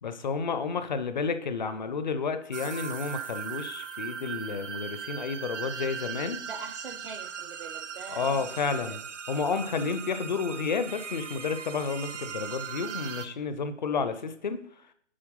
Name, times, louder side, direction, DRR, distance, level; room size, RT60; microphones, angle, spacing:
voice 1, 0.0-6.4 8.1-9.0 9.3-14.6, left 5 dB, 40° left, 10 dB, 0.7 m, -31 dB
sound 1, 2.5-13.3, right 7 dB, 70° right, 1.0 m, -39 dB
voice 2, 6.4-9.0, right 4 dB, 45° right, 7 dB, 0.7 m, -44 dB
8.7 x 4.3 x 5.5 m, 0.64 s
hypercardioid pair, 160°, 37 cm